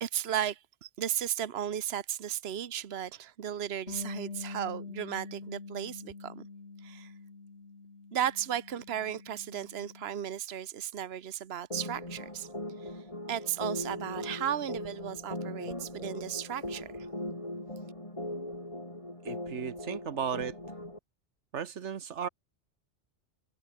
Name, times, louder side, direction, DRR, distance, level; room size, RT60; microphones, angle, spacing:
voice 1, 0.0-6.5 6.8-7.1 8.1-12.5 12.8-13.0 13.3-17.1, right 10 dB, 65° right, 1.2 m, -35 dB
Bass guitar, 3.9-10.1, left 4 dB, 70° left, 2.6 m, -45 dB
sound 1, 11.7-21.0, left 1 dB, 30° left, 5.3 m, -39 dB
voice 2, 19.2-20.6 21.5-22.3, right 7 dB, 90° right, 1.4 m, -35 dB
omnidirectional pair, 1.2 m